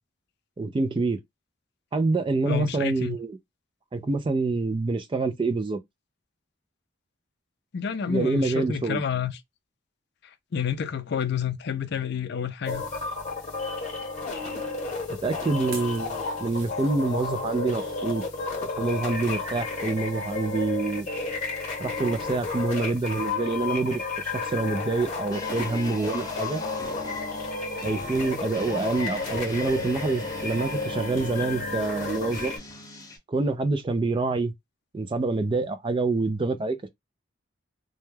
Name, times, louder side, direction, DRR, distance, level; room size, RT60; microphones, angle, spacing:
voice 1, 0.6-1.2 1.9-3.4 3.9-5.8 8.1-9.0 15.1-18.2 18.6-21.1 21.8-26.6 27.8-32.5 33.3-34.5 34.9-36.9, right 3 dB, 25° right, 0.3 m, -26 dB
voice 2, 2.4-3.2 7.7-9.3 10.5-12.8, left 7 dB, 55° left, 0.4 m, -29 dB
sound 1, 12.7-32.6, left 3 dB, 40° left, 0.9 m, -32 dB
sound 2, 15.6-18.2 18.8-19.4 19.8-21.5 21.8-22.0 22.4-22.5, right 4 dB, 80° right, 0.8 m, -48 dB
sound 3, 25.3-33.2, left 1 dB, 20° left, 0.6 m, -40 dB
2.2 x 2.2 x 3.1 m
head